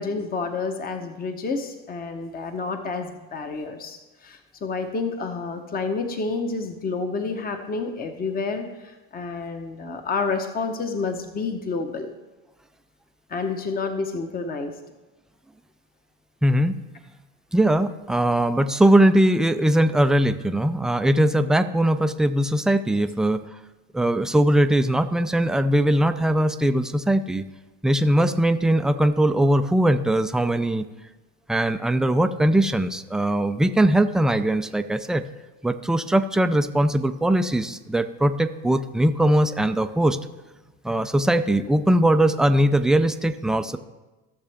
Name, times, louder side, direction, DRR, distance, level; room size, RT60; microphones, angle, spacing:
voice 1, 0.0-12.1 13.3-14.7, left 4 dB, 25° left, 6 dB, 1.0 m, -29 dB
voice 2, 16.4-16.8 17.5-23.4 23.9-27.4 27.8-30.9 31.5-35.3 35.6-40.2 40.8-43.8, right 1 dB, ahead, 9 dB, 0.4 m, -20 dB
15.0 x 6.8 x 3.5 m, 1.1 s
supercardioid pair, 100°, 34 cm